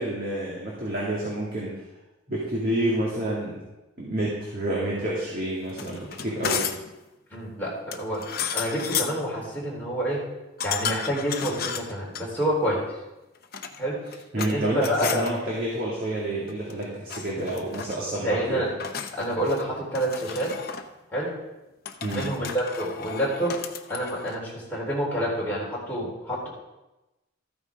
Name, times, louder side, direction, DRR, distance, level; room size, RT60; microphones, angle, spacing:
voice 1, 0.0-1.8 2.3-3.6 4.0-6.7 14.3-18.6 22.0-22.3, right 1 dB, 45° right, -6 dB, 2.2 m, -29 dB
sound 1, 5.7-6.9 7.9-9.2 10.6-12.2 13.3-14.5 14.8-15.3 16.5-16.8 17.1-18.0 18.8-19.7 19.9-20.9 21.8-24.4, left 7 dB, 50° left, 0.7 m, -33 dB
voice 2, 7.3-10.2 10.6-12.8 13.8-14.0 14.4-15.3 18.2-18.7 19.1-20.5 21.1-21.3 22.1-23.6 23.9-26.5, equal, 10° left, -7 dB, 3.9 m, -28 dB
13.5 x 9.3 x 3.7 m, 1.0 s
head